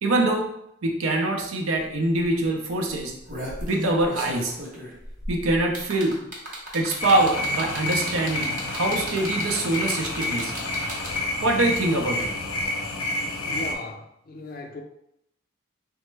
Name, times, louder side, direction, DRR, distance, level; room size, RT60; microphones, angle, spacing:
voice 1, 0.0-0.5 0.8-3.1 3.7-4.5 5.3-6.2 6.7-10.5 11.4-12.3, right 2 dB, 85° right, 2 dB, 0.5 m, -24 dB
sound 1, 1.8-1.9 2.2-2.4 3.0-11.4 12.6-12.7, right 1 dB, 40° right, 0.7 m, -35 dB
sound 2, 7.0-13.7, left 2 dB, 90° left, 0.6 m, -29 dB
voice 2, 13.4-14.8, left 2 dB, 45° left, 3 dB, 0.4 m, -37 dB
3.2 x 2.1 x 3.2 m, 0.78 s
head